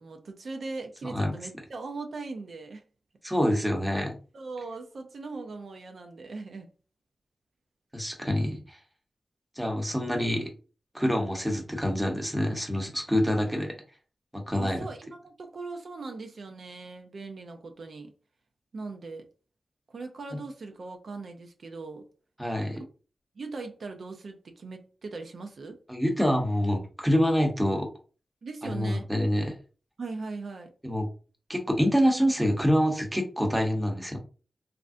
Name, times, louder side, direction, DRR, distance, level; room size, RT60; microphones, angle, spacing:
voice 1, 0.0-2.8 4.3-6.7 14.6-18.1 18.7-19.3 19.9-22.1 23.4-25.8 28.4-29.1 30.0-30.7, right 3 dB, 70° right, 0.4 m, -39 dB
voice 2, 1.0-1.3 3.2-4.1 7.9-8.8 9.6-10.5 10.9-13.7 14.3-14.8 22.4-22.8 25.9-27.9 28.6-29.5 30.8-31.1 31.5-34.2, equal, 5° right, 0.8 m, -26 dB
3.2 x 2.5 x 2.5 m
wide cardioid pair, 125°, 0 cm